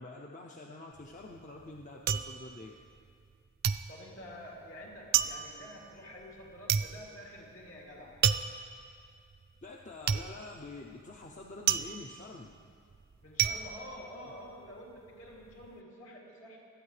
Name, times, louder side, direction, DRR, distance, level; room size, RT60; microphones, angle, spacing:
voice 1, 0.0-2.7 9.6-12.6, left 2 dB, 35° left, 0 dB, 0.5 m, -46 dB
sound 1, 0.9-3.3 3.6-14.8 15.1-15.7, right 9 dB, 45° right, 0.3 m, -32 dB
voice 2, 3.9-8.2 13.2-16.6, equal, 65° left, -3 dB, 2.7 m, -48 dB
25.0 x 8.8 x 3.3 m, 2.3 s
head